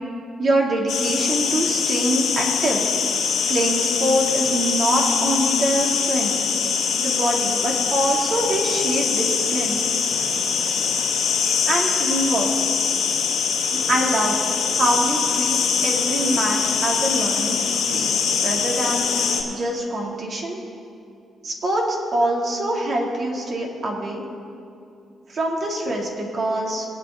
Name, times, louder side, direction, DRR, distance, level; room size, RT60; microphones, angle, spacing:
voice 1, 0.4-2.9 3.5-6.3 7.0-9.8 10.1-10.2 11.7-12.5 13.9-14.4 14.7-20.6 21.4-24.2 25.3-26.9, right 1 dB, 50° right, -1 dB, 2.3 m, -24 dB
sound 1, 0.9-19.4, left 6 dB, 85° left, 2.5 m, -23 dB
21.0 x 8.4 x 3.6 m, 2.5 s
cardioid pair, 90°, 0 cm